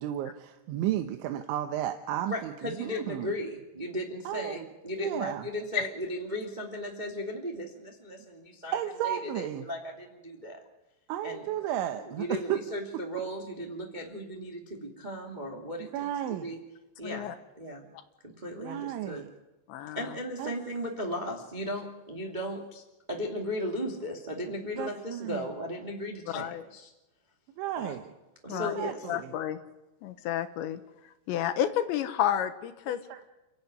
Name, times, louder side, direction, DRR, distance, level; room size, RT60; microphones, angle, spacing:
voice 1, 0.0-3.3 4.2-4.7 5.0-5.4 8.7-9.7 11.1-12.6 15.9-16.5 18.6-19.3 20.4-20.5 24.8-25.5 27.5-28.0 28.5-29.3 32.9-33.2, right 12 dB, 80° right, 6 dB, 3.4 m, -33 dB
voice 2, 2.3-8.8 9.0-10.6 11.2-11.5 12.0-16.6 17.0-17.9 18.2-19.2 19.9-22.8 23.1-26.9 27.7-28.0 28.4-29.0, equal, 15° right, 0 dB, 1.5 m, -36 dB
voice 3, 17.0-17.3 19.7-20.0 26.3-26.6 28.5-28.8 29.1-29.6 30.0-30.8 31.3-33.0, left 10 dB, 75° left, 9 dB, 3.3 m, -30 dB
29.5 x 14.0 x 9.7 m, 1.0 s
omnidirectional pair, 5.3 m